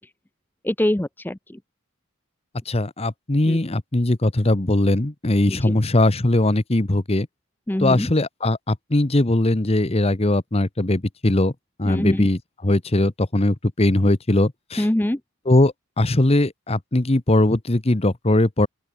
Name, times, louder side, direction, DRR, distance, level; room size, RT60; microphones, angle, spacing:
voice 1, 0.6-1.6 3.5-3.6 5.5-5.8 7.7-8.1 11.9-12.3 14.8-15.2, left 1 dB, 10° left, 0.5 m, -24 dB
voice 2, 2.7-7.3 7.8-11.5 11.8-14.9 15.5-18.7, left 1 dB, 25° left, 1.0 m, -20 dB
open air
head